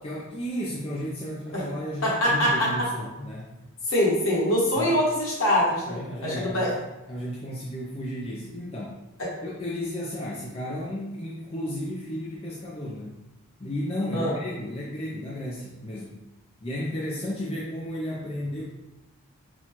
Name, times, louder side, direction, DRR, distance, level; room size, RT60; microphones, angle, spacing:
voice 1, 0.0-3.5 4.8-4.9 5.9-6.7 7.1-9.0 9.4-13.1 13.6-16.2 16.6-18.6, equal, 25° left, -5 dB, 0.4 m, -33 dB
voice 2, 2.0-2.9 3.9-6.7 14.1-14.3, equal, 60° left, -5 dB, 1.4 m, -24 dB
4.3 x 2.3 x 4.4 m, 1.0 s
head